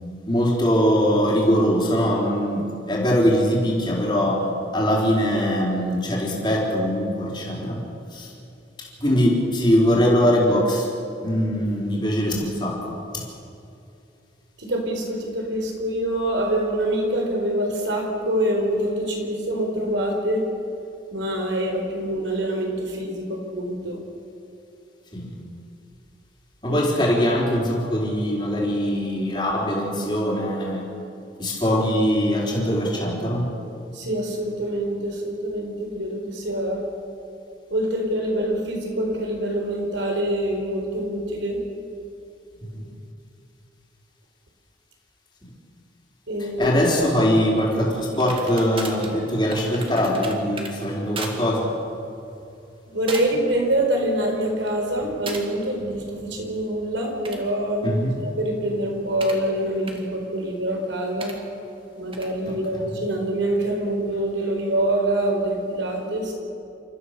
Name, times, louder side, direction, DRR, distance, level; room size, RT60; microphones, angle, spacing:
voice 1, 0.3-4.4 4.7-7.8 8.1-8.3 8.8-10.9 11.2-13.2 25.1-25.4 26.6-30.8 31.4-33.5 42.7-42.8 46.6-51.7 57.8-58.2 62.5-62.8, equal, 25° left, -3 dB, 4.0 m, -22 dB
voice 2, 14.6-20.4 21.1-24.0 26.7-26.8 28.9-29.0 33.9-36.8 37.7-41.6 46.3-46.8 52.9-57.9 58.2-61.3 62.0-66.3, right 1 dB, 80° right, 1 dB, 4.4 m, -25 dB
sound 1, 48.1-50.7 51.1-51.4 51.7-52.0 52.6-52.8 53.1-53.5 53.9-54.3 55.3-55.5 57.0-59.4 59.9-60.0 61.2-61.3 62.1-62.3, right 3 dB, 30° right, 2.1 m, -37 dB
28.5 x 14.0 x 6.7 m, 2.7 s
head